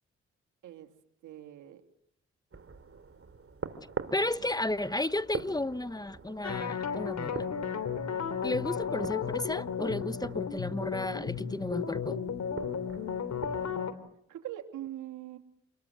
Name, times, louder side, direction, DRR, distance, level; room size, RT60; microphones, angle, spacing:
voice 1, 1.2-1.8 4.3-4.4 14.3-15.4, right 13 dB, 85° right, 2.8 m, -42 dB
sound 1, 2.5-13.8, right 5 dB, 45° right, 3.6 m, -44 dB
voice 2, 4.1-7.5 8.4-12.2, left 2 dB, 15° left, 0.9 m, -33 dB
sound 2, 6.4-13.9, left 7 dB, 65° left, 3.2 m, -34 dB
28.0 x 21.0 x 8.2 m
supercardioid pair, 50°, 30 cm